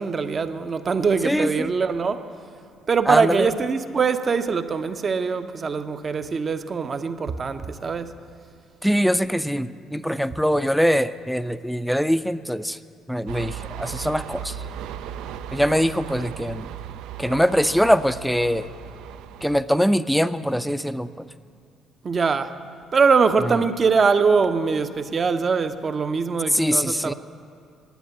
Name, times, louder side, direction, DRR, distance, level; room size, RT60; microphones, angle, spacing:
voice 1, 0.0-2.3 2.9-8.1 22.0-22.5 22.9-27.1, right 5 dB, 40° right, 10 dB, 0.7 m, -22 dB
voice 2, 1.2-1.7 3.1-3.5 8.8-12.8 13.1-14.5 15.5-16.7 17.2-18.7 19.4-21.1 26.5-27.1, equal, ahead, 14 dB, 0.4 m, -22 dB
sound 1, 13.3-19.6, right 9 dB, 65° right, 0.3 m, -36 dB
10.5 x 9.1 x 8.2 m, 2.5 s
hypercardioid pair, 50°, 0 cm